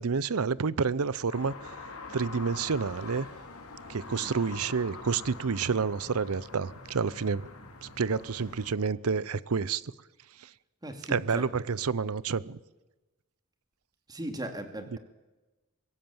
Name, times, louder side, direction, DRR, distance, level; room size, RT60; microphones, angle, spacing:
voice 1, 0.0-1.7 2.1-3.3 3.9-7.5 7.8-9.8 10.4-10.5 11.1-12.6, right 5 dB, 75° right, 0.7 m, -29 dB
sound 1, 1.3-8.7, left 3 dB, 85° left, 3.7 m, -45 dB
voice 2, 10.8-11.5 14.1-15.0, right 1 dB, 20° right, 2.4 m, -38 dB
24.0 x 16.0 x 7.3 m
head